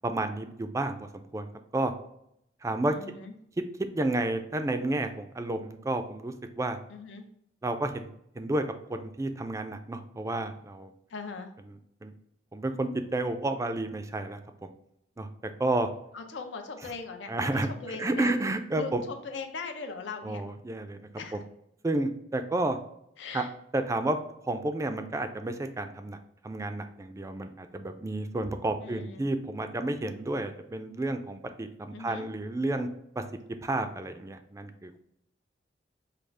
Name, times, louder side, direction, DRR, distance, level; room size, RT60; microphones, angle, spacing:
voice 1, 0.0-1.5 1.7-1.9 2.6-3.0 3.9-6.8 7.6-8.1 8.4-8.6 8.9-10.9 12.0-12.1 12.5-14.7 15.2-15.3 15.6-15.9 17.3-19.0 20.2-21.4 21.8-22.8 23.3-23.5 23.7-24.2 24.4-26.2 26.4-32.9 33.2-33.3 33.6-35.0, right 2 dB, 15° right, 7 dB, 0.3 m, -31 dB
voice 2, 2.9-3.3 6.9-7.3 11.1-11.5 16.1-18.3 18.8-20.4 21.2-21.4 23.2-23.5 28.8-29.2 31.9-32.3, left 4 dB, 80° left, 5 dB, 0.5 m, -39 dB
4.9 x 2.3 x 3.3 m, 0.75 s
head